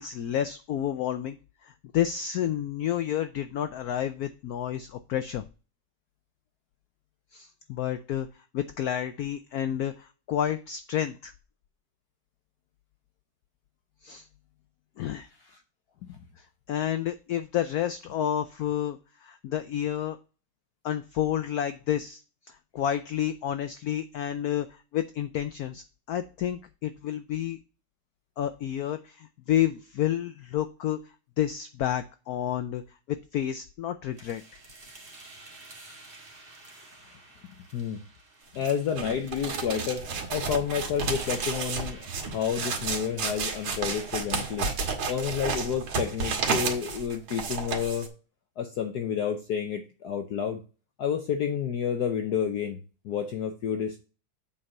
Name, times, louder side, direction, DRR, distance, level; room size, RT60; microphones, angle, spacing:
voice 1, 0.0-1.4 1.6-5.4 7.3-8.3 8.5-11.3 14.0-14.2 15.0-15.3 16.4-20.2 20.8-22.2 22.5-27.6 28.4-31.0 31.4-32.8 33.1-34.4, left 10 dB, 80° left, 10 dB, 0.8 m, -30 dB
sound 1, 34.1-46.1, right 2 dB, 30° right, 1.8 m, -51 dB
voice 2, 36.7-37.2 37.7-38.0 38.5-44.7 45.1-48.1 48.6-50.6 51.0-52.8 53.0-54.0, left 8 dB, 60° left, 5 dB, 1.2 m, -30 dB
sound 2, 38.6-48.1, right 5 dB, 80° right, 2.3 m, -31 dB
7.6 x 4.5 x 5.4 m, 0.34 s
omnidirectional pair, 2.2 m